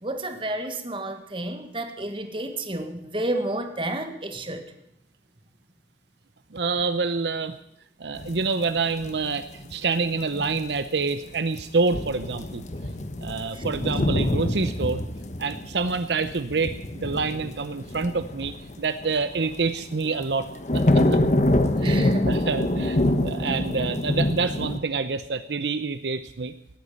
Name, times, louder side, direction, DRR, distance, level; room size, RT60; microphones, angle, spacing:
voice 1, 0.0-4.6 13.5-13.6 21.8-22.3, right 1 dB, 30° right, 6 dB, 1.7 m, -31 dB
voice 2, 6.5-7.6 8.0-12.6 13.2-15.0 15.4-20.5 20.7-21.2 21.8-26.5, right 4 dB, 75° right, 11 dB, 0.7 m, -27 dB
sound 1, 8.2-9.7 10.1-10.6 11.0-11.1 11.4-11.6 11.9-19.6 20.1-24.8, left 1 dB, 40° left, 1.2 m, -26 dB
17.5 x 9.4 x 8.6 m, 0.80 s
head